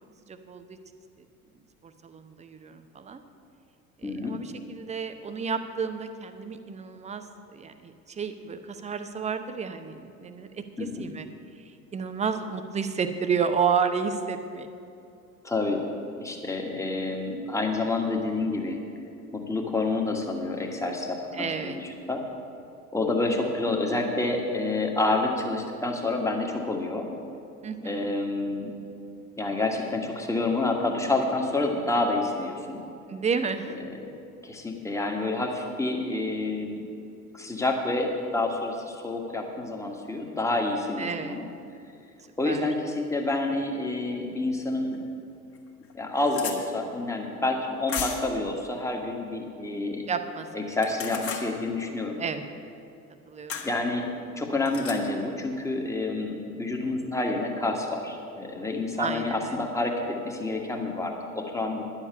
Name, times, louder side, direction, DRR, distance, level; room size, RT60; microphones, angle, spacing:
voice 1, 0.3-0.8 1.2-1.3 1.8-3.2 4.0-10.5 11.0-11.3 11.6-14.7 21.3-21.8 27.6-28.1 33.1-33.8 41.0-41.4 42.4-42.6 50.1-50.8 52.2-52.5 53.3-53.5 59.0-59.6, right 6 dB, 15° right, 9 dB, 0.7 m, -31 dB
voice 2, 4.0-4.4 10.8-11.1 15.4-15.8 16.1-18.8 19.3-22.2 22.9-27.1 27.8-28.7 29.4-32.8 33.9-34.0 34.4-36.8 37.3-41.5 42.4-45.0 45.9-50.0 50.5-52.2 53.6-54.1 54.4-61.8, left 2 dB, 5° left, 1 dB, 1.5 m, -28 dB
sound 1, 44.9-45.0 45.5-45.6 45.8-46.6 47.9-48.4 50.7-51.5 53.5-53.7 54.6-55.0, left 7 dB, 30° left, 1.6 m, -34 dB
10.5 x 7.4 x 8.3 m, 2.7 s
figure-of-eight pair, 75°, 45 cm